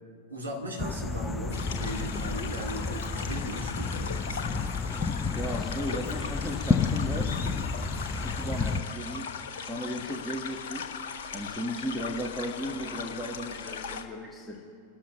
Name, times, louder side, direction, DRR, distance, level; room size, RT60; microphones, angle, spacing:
voice 1, 0.3-4.7, right 1 dB, 80° right, -2 dB, 2.9 m, -37 dB
sound 1, 0.8-8.8, left 4 dB, 15° left, 0.8 m, -31 dB
sound 2, 1.5-14.1, left 6 dB, 60° left, 1.2 m, -39 dB
voice 2, 5.3-7.7 8.2-14.6, equal, ahead, -1 dB, 1.8 m, -36 dB
29.0 x 13.5 x 3.3 m, 2.5 s
figure-of-eight pair, 90°, 0 cm